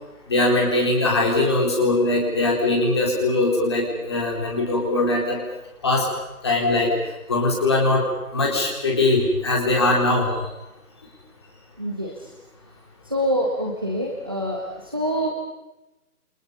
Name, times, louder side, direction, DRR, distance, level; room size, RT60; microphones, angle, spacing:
voice 1, 0.3-5.4 5.8-6.1 6.4-6.9 7.3-8.0 8.3-10.3, left 2 dB, 15° left, -1 dB, 4.0 m, -21 dB
voice 2, 11.8-12.1 13.1-14.6 14.9-15.3, equal, 15° right, -1 dB, 1.4 m, -25 dB
29.5 x 26.0 x 5.4 m, 0.97 s
figure-of-eight pair, 180°, 45 cm